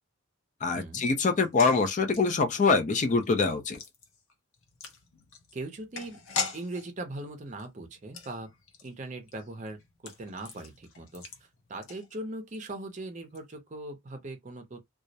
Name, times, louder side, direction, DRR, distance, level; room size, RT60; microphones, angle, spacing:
voice 1, 0.6-3.8, left 4 dB, 40° left, 0.4 m, -24 dB
sound 1, 1.3-12.6 12.8-12.9 13.2-13.4, left 5 dB, 90° left, 0.6 m, -42 dB
voice 2, 5.5-6.2 6.5-8.5 8.8-11.2 11.7-14.8, right 2 dB, 35° right, 0.5 m, -40 dB
2.2 x 2.0 x 2.7 m
head